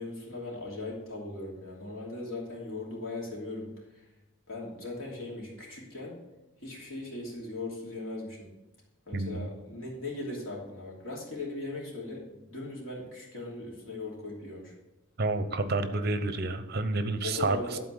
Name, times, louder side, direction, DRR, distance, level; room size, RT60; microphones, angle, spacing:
voice 1, 0.0-4.0 4.5-6.2 6.6-8.5 9.1-14.7 17.2-17.8, left 2 dB, 85° left, -3 dB, 3.0 m, -39 dB
voice 2, 9.1-9.5 15.2-17.8, right 3 dB, 50° right, 10 dB, 0.8 m, -29 dB
11.5 x 4.3 x 6.8 m, 1.0 s
head